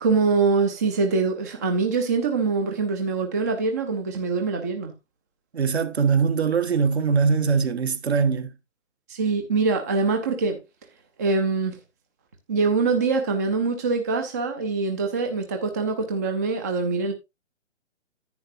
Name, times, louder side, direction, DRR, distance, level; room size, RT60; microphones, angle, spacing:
voice 1, 0.0-4.9 9.1-10.6 11.2-11.8 12.5-17.1, right 4 dB, 15° right, 0.5 m, -24 dB
voice 2, 5.5-8.5, right 5 dB, 60° right, 1.5 m, -22 dB
10.5 x 9.3 x 2.6 m
figure-of-eight pair, 140°, 37 cm